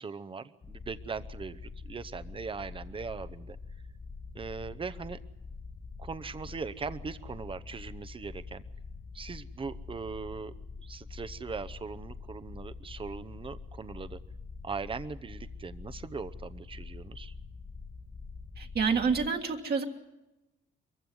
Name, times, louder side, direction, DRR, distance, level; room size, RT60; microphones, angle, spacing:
voice 1, 0.0-3.6 4.3-5.2 6.0-8.6 9.1-14.2 14.6-17.3, right 5 dB, 25° right, 12 dB, 0.8 m, -40 dB
sound 1, 0.6-19.3, left 4 dB, 25° left, 1.2 m, -45 dB
voice 2, 18.6-19.8, right 5 dB, 55° right, 2 dB, 1.9 m, -28 dB
23.0 x 15.5 x 9.4 m, 0.96 s
cardioid pair, 90°, 20 cm